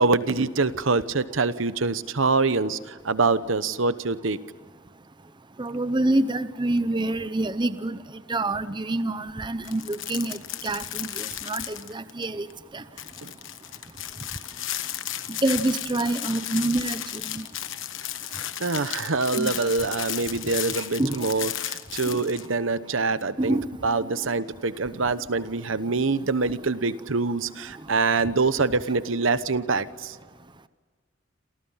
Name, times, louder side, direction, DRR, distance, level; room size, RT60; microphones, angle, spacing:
voice 1, 0.0-2.8 3.0-4.4 13.2-13.3 18.6-30.2, right 3 dB, 75° right, 14 dB, 1.0 m, -25 dB
voice 2, 5.6-8.0 8.3-12.5 12.7-12.8 15.3-17.5 19.3-19.7 20.8-21.3 22.1-22.2 23.4-23.7, right 2 dB, 25° right, 12 dB, 0.8 m, -27 dB
sound 1, 9.6-12.2 12.5-12.6 13.0-22.5, left 12 dB, 70° left, 1.3 m, -34 dB
28.5 x 28.5 x 5.7 m, 1.4 s
head